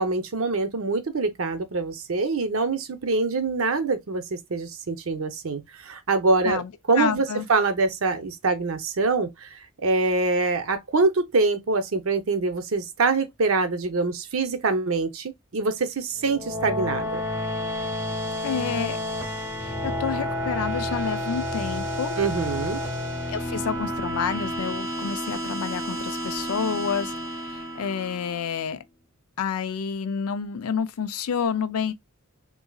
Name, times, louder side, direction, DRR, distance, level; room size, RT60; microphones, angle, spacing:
voice 1, 0.0-6.6 6.9-9.5 9.8-17.2 22.2-22.8, right 3 dB, 70° right, 0.7 m, -24 dB
voice 2, 6.4-7.5 18.4-19.0 19.6-22.2 23.3-27.1 27.4-28.8 29.4-31.9, left 6 dB, 85° left, 0.5 m, -29 dB
sound 1, 16.2-28.5, left 1 dB, 10° right, 0.8 m, -30 dB
3.8 x 2.6 x 2.3 m
head